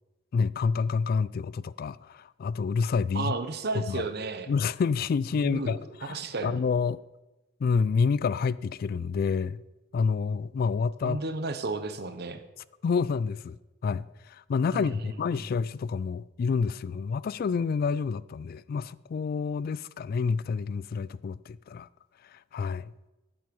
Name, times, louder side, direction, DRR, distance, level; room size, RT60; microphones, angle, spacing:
voice 1, 0.3-3.3 3.7-4.0 4.5-7.0 7.6-9.6 9.9-11.2 12.8-13.6 13.8-21.9 22.3-22.9, left 5 dB, 50° left, 0.3 m, -28 dB
voice 2, 3.1-4.5 5.3-6.6 11.0-12.4 14.7-15.5, right 3 dB, 60° right, 1.0 m, -33 dB
12.5 x 7.7 x 5.4 m
head